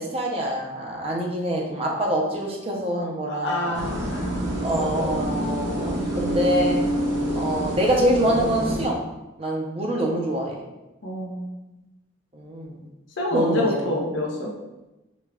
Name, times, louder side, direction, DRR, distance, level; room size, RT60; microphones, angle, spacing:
voice 1, 0.0-3.8 4.6-6.8 7.3-9.0 9.4-10.6 12.3-12.8 13.3-13.8, right 1 dB, 30° right, -1 dB, 0.6 m, -25 dB
voice 2, 3.3-4.3 11.0-11.5 13.2-14.5, left 1 dB, 70° left, -1 dB, 0.7 m, -27 dB
sound 1, 3.7-8.9, right 1 dB, 60° right, 0.9 m, -27 dB
5.1 x 2.3 x 2.3 m, 1.0 s
head